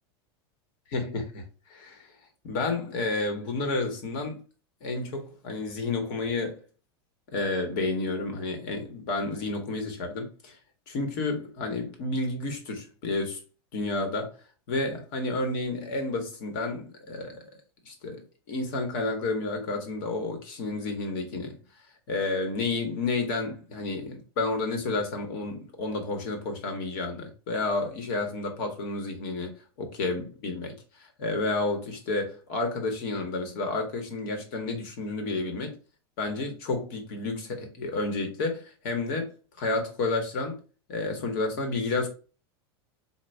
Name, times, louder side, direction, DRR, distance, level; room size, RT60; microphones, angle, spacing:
voice 1, 0.9-1.4 1.7-2.1 2.4-4.4 4.8-6.6 7.3-10.6 10.9-13.4 13.7-14.3 14.7-17.4 17.8-21.6 22.1-30.7 31.2-35.7 36.2-39.3 39.6-40.6 40.9-42.1, left 3 dB, 50° left, 1.1 m, -30 dB
4.2 x 2.3 x 3.4 m
supercardioid pair, 165°, 14 cm